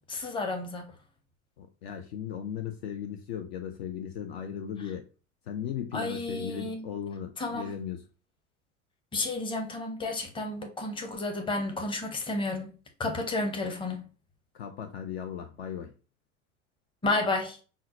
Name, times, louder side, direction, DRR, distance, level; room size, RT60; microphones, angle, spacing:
voice 1, 0.1-0.8 5.9-6.8 7.4-7.7 9.1-12.7 13.0-14.0 17.0-17.6, left 2 dB, 15° left, 0.7 m, -31 dB
voice 2, 1.6-5.1 5.5-8.0 14.5-15.9, left 8 dB, 50° left, 0.5 m, -37 dB
5.4 x 2.1 x 2.6 m
figure-of-eight pair, 80°, 40 cm